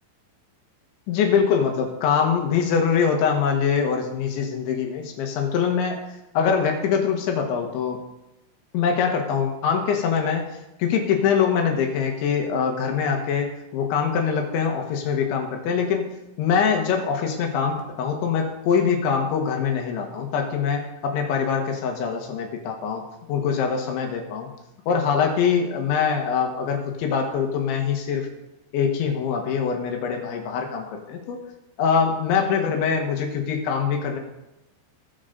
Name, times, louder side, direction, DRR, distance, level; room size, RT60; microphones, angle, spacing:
voice 1, 1.1-6.0 6.4-8.0 8.7-10.5 10.8-16.1 16.4-24.5 24.9-28.3 28.7-31.4 31.8-34.2, left 6 dB, 75° left, 3 dB, 3.6 m, -23 dB
19.5 x 6.5 x 3.9 m, 0.91 s
omnidirectional pair, 5.6 m